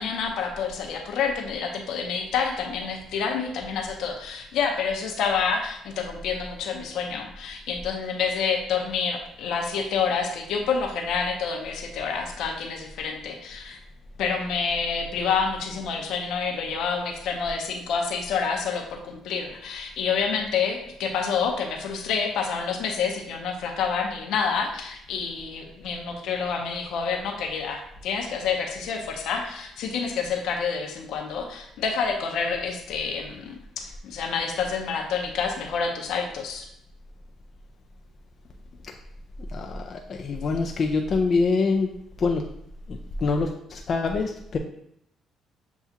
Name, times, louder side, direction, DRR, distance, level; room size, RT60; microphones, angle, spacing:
voice 1, 0.0-13.8 14.2-36.7, left 5 dB, 80° left, 3 dB, 0.7 m, -28 dB
voice 2, 39.5-41.9 42.2-42.4 42.9-44.6, left 4 dB, 50° left, 3 dB, 0.4 m, -25 dB
7.0 x 2.3 x 2.8 m, 0.76 s
cardioid pair, 90°, 0 cm